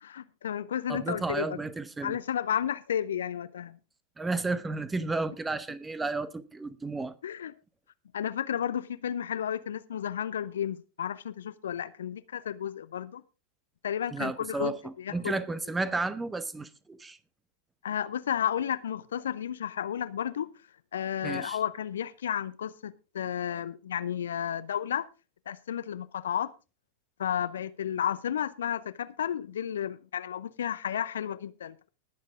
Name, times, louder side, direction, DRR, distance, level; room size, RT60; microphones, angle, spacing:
voice 1, 0.0-1.6 2.0-3.8 7.2-7.5 8.1-13.2 13.8-15.3 17.8-20.5 20.9-25.1 25.5-26.5 27.2-31.9, left 9 dB, 65° left, 0.7 m, -32 dB
voice 2, 0.9-2.2 4.2-7.1 14.1-17.2 21.2-21.6, right 3 dB, 10° right, 1.0 m, -32 dB
20.0 x 7.5 x 3.6 m
figure-of-eight pair, 90°, 0 cm